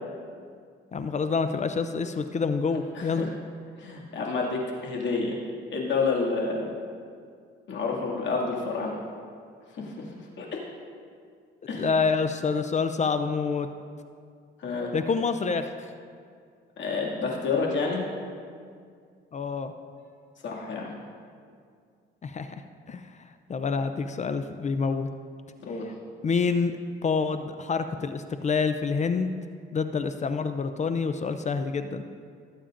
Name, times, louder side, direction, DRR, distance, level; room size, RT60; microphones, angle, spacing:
voice 1, 0.9-3.3 11.8-13.7 14.9-15.7 19.3-19.7 22.2-22.6 22.9-23.1 23.5-25.1 26.2-26.7 27.0-29.3 29.7-32.0, left 5 dB, 35° left, 9 dB, 0.5 m, -27 dB
voice 2, 2.9-3.3 3.8-5.4 5.7-6.7 7.7-9.0 9.7-10.1 10.4-10.6 11.7-11.9 14.6-14.9 16.8-18.0 20.4-21.0 25.6-25.9, left 4 dB, 70° left, -2 dB, 2.3 m, -29 dB
19.5 x 8.6 x 2.6 m, 2.2 s
cardioid pair, 90°, 20 cm